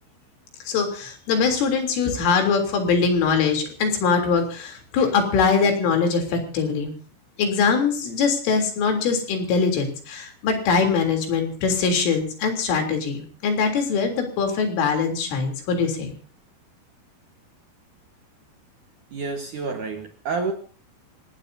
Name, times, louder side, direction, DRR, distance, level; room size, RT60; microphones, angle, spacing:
voice 1, 0.7-6.9 7.4-16.1, left 5 dB, 80° left, 4 dB, 6.0 m, -22 dB
voice 2, 19.1-20.5, right 4 dB, 60° right, 4 dB, 2.2 m, -29 dB
26.0 x 18.5 x 2.8 m, 0.42 s
omnidirectional pair, 5.6 m